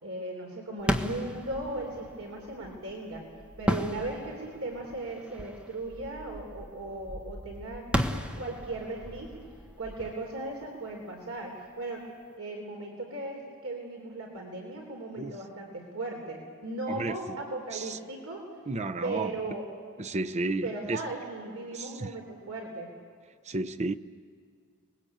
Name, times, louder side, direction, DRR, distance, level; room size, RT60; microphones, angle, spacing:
voice 1, 0.0-3.2 3.6-7.9 8.3-9.3 9.8-12.1 12.4-18.5 19.0-19.7 20.6-22.9, right 2 dB, 70° right, 3.7 m, -37 dB
sound 1, 0.8-11.4, equal, 5° right, 1.2 m, -35 dB
voice 2, 16.9-17.4 17.7-18.0 18.7-19.3 20.0-21.0 21.7-22.1 23.4-23.9, right 2 dB, 30° right, 0.7 m, -32 dB
30.0 x 21.0 x 8.6 m
head